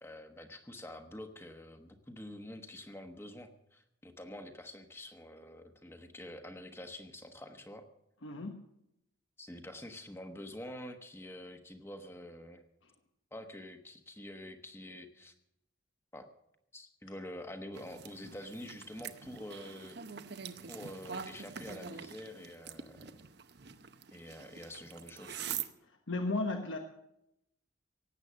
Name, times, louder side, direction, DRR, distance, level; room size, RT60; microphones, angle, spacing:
voice 1, 0.0-7.9 9.4-12.6 13.3-15.3 16.1-16.3 16.7-20.0 20.7-23.1 24.1-25.5, left 1 dB, 10° left, 6 dB, 1.2 m, -47 dB
voice 2, 8.2-8.6 26.1-26.8, left 2 dB, 75° left, 4 dB, 1.2 m, -34 dB
sound 1, 17.7-25.7, right 7 dB, 55° right, 0.8 m, -45 dB
18.0 x 8.2 x 7.5 m, 0.81 s
head